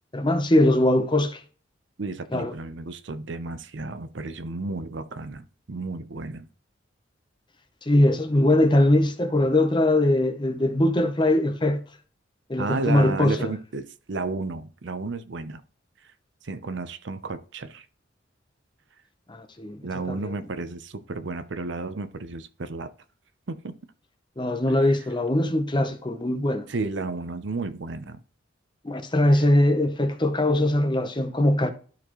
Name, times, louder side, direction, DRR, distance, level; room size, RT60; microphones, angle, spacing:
voice 1, 0.1-1.4 2.3-2.5 7.8-11.8 12.5-13.5 19.3-20.4 24.4-26.7 28.8-31.7, left 1 dB, 25° left, 0.8 m, -21 dB
voice 2, 2.0-6.5 12.6-15.6 16.4-17.9 19.8-22.9 23.5-23.7 26.7-28.2 29.3-29.4, right 3 dB, 65° right, 0.6 m, -32 dB
12.5 x 4.3 x 3.0 m
head